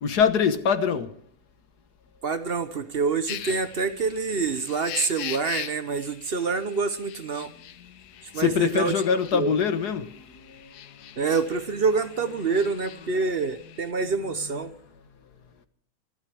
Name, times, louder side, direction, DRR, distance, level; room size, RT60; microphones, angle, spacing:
voice 1, 0.0-1.1 7.4-8.0 8.3-11.2 14.4-14.8, left 7 dB, 55° left, 1.7 m, -25 dB
voice 2, 2.2-7.5 8.3-8.9 9.3-9.5 11.2-14.7, right 4 dB, 50° right, 0.7 m, -26 dB
sound 1, 3.3-13.9, left 11 dB, 80° left, 1.6 m, -42 dB
26.0 x 12.5 x 3.4 m
omnidirectional pair, 2.2 m